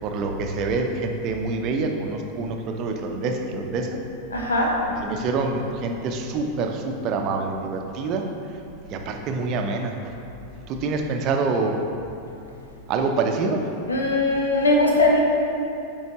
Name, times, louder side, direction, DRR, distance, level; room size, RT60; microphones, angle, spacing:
voice 1, 0.0-4.0 5.0-8.2 8.9-10.1 10.7-11.8 12.9-13.6, right 3 dB, 40° right, 3 dB, 0.7 m, -26 dB
voice 2, 4.3-4.7 13.9-15.2, left 2 dB, 75° left, -1 dB, 1.1 m, -20 dB
9.3 x 4.7 x 3.0 m, 2.9 s
figure-of-eight pair, 90°, 0 cm